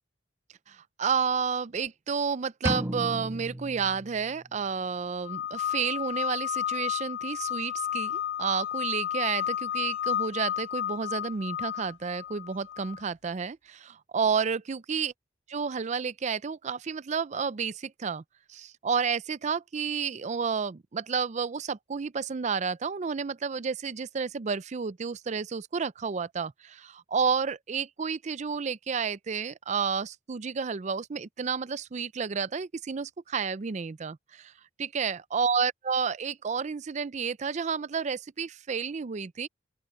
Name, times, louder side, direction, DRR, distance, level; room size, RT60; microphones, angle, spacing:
voice 1, 0.7-15.1 15.5-18.2 18.5-34.5 34.8-39.5, right 6 dB, 40° right, 0.4 m, -31 dB
sound 1, 2.7-4.6, right 1 dB, 15° right, 1.2 m, -34 dB
sound 2, 5.2-13.0, left 10 dB, 75° left, 1.9 m, -32 dB
open air
head